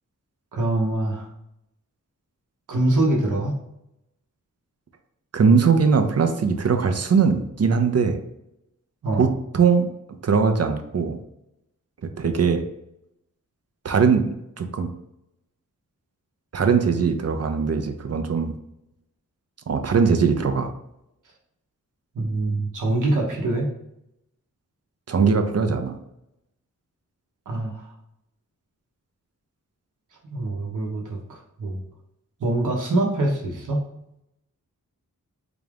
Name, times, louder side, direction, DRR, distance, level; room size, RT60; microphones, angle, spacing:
voice 1, 0.5-1.3 2.7-3.6 9.0-9.3 22.1-23.7 27.5-27.9 30.3-31.8 32.4-33.8, right 2 dB, 65° right, -2 dB, 0.9 m, -24 dB
voice 2, 5.3-8.2 9.2-9.3 9.5-9.9 10.2-11.2 12.2-12.6 13.8-14.9 16.5-18.5 19.7-20.7 25.1-26.0, right 5 dB, 50° right, 7 dB, 0.6 m, -20 dB
3.9 x 2.4 x 3.4 m, 0.83 s
cardioid pair, 55°, 33 cm